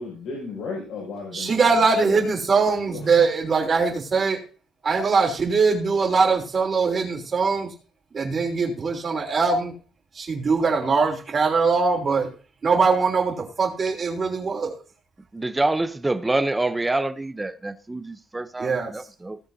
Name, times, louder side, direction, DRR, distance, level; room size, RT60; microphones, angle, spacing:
voice 1, 0.0-2.3 2.7-3.3, left 4 dB, 80° left, 5.5 m, -35 dB
voice 2, 1.3-4.4 4.8-7.7 8.1-9.7 10.1-12.3 12.6-14.7 18.6-18.9, right 4 dB, 35° right, 3.3 m, -22 dB
voice 3, 15.3-19.4, right 2 dB, 10° right, 0.7 m, -26 dB
18.0 x 7.1 x 2.7 m
cardioid pair, 130°, 0 cm